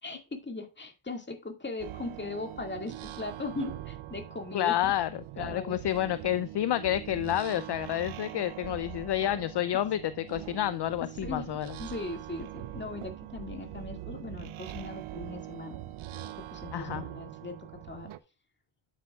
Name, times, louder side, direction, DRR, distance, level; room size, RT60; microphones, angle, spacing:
voice 1, 0.0-4.9 5.4-5.8 11.0-11.5 11.8-15.8 16.5-17.6 17.9-18.1, left 2 dB, 20° left, 4 dB, 2.1 m, -39 dB
sound 1, 1.8-18.2, right 13 dB, 70° right, 0.7 m, -42 dB
voice 2, 4.5-5.1 5.4-11.7 16.7-17.0, left 12 dB, 55° left, 14 dB, 0.5 m, -29 dB
9.2 x 8.4 x 2.4 m, 0.29 s
cardioid pair, 90°, 50 cm